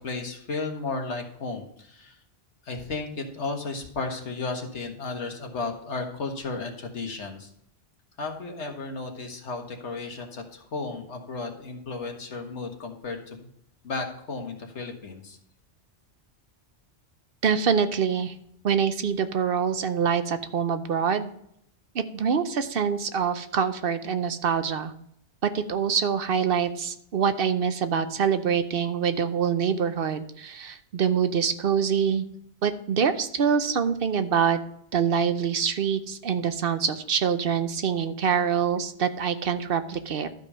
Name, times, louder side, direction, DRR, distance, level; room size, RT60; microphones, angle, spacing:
voice 1, 0.0-2.2 2.6-7.5 8.2-13.5 13.8-15.4, left 3 dB, 85° left, 3 dB, 1.8 m, -34 dB
voice 2, 17.4-18.3 18.6-21.3 21.9-24.9 25.4-32.3 32.6-34.6 34.9-40.3, right 7 dB, 60° right, 10 dB, 0.9 m, -25 dB
12.0 x 5.3 x 5.5 m, 0.72 s
omnidirectional pair, 1.1 m